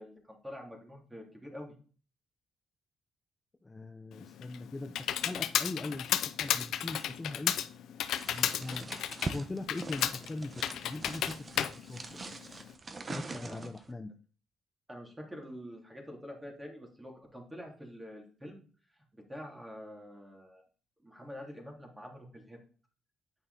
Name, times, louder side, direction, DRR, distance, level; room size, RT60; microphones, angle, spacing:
voice 1, 0.0-1.8 13.3-13.7 14.9-18.6 19.1-20.6 21.0-22.6, equal, 10° right, 0 dB, 2.9 m, -46 dB
voice 2, 3.6-7.5 8.3-9.0 9.3-10.5 10.8-12.1 13.1-14.1, left 2 dB, 20° left, 6 dB, 0.7 m, -41 dB
Computer keyboard, 4.1-12.7, left 10 dB, 80° left, 0.5 m, -33 dB
sound 1, 8.2-13.9, right 3 dB, 35° right, 1.0 m, -43 dB
9.1 x 5.4 x 4.1 m, 0.41 s
cardioid pair, 90°, 0 cm